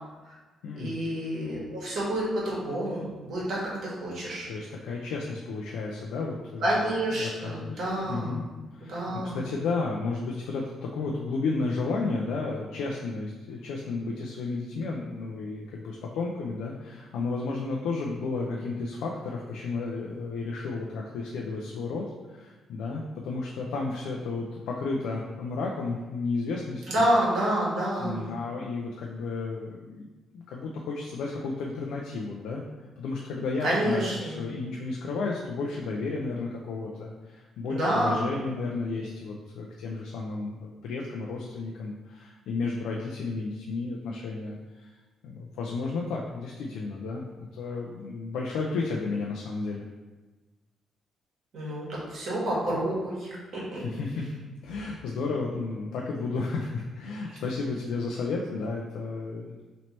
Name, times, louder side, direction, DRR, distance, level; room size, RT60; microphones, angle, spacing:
voice 1, 0.7-4.5 6.6-8.5 8.9-9.4 26.9-28.3 33.6-34.5 37.6-38.3 51.5-53.8 57.3-57.4, right 1 dB, 65° right, -5 dB, 1.4 m, -28 dB
voice 2, 4.5-6.9 7.2-7.8 8.1-8.4 8.7-9.0 9.3-26.8 28.0-30.1 30.3-32.6 33.0-44.9 45.2-49.8 53.7-54.3 54.6-59.6, left 3 dB, 85° left, -1 dB, 0.4 m, -32 dB
3.1 x 2.9 x 4.1 m, 1.2 s
cardioid pair, 90°, 0 cm